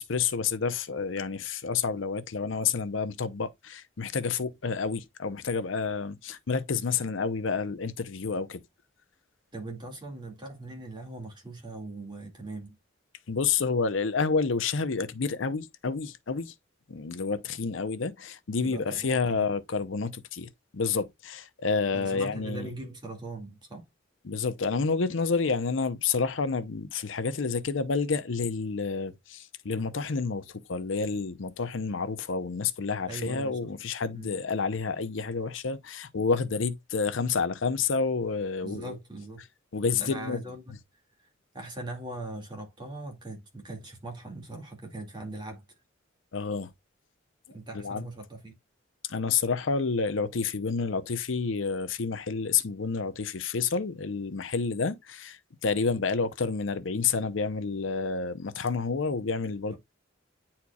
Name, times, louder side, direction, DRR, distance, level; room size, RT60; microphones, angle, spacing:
voice 1, 0.0-8.6 13.3-16.5 16.9-22.7 24.2-39.0 39.7-40.4 46.3-46.7 47.7-48.1 49.0-59.7, left 5 dB, 75° left, 0.7 m, -29 dB
voice 2, 9.5-12.8 18.6-19.5 21.9-23.9 33.1-33.7 34.1-34.3 38.6-39.5 40.0-40.7 41.5-45.6 47.5-48.5 59.7-59.8, right 2 dB, 25° right, 2.2 m, -40 dB
9.6 x 4.4 x 2.3 m
head